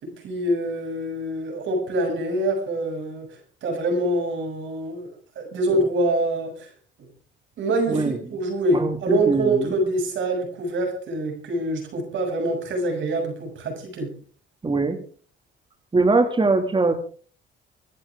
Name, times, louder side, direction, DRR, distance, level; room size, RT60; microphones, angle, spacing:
voice 1, 0.2-3.3 3.6-5.1 5.4-6.7 7.6-14.1, right 1 dB, 75° right, 2 dB, 6.9 m, -25 dB
voice 2, 8.7-9.8 14.6-15.0 15.9-16.9, right 3 dB, 25° right, 5 dB, 2.3 m, -21 dB
25.0 x 11.5 x 3.6 m, 0.42 s
cardioid pair, 90°, 20 cm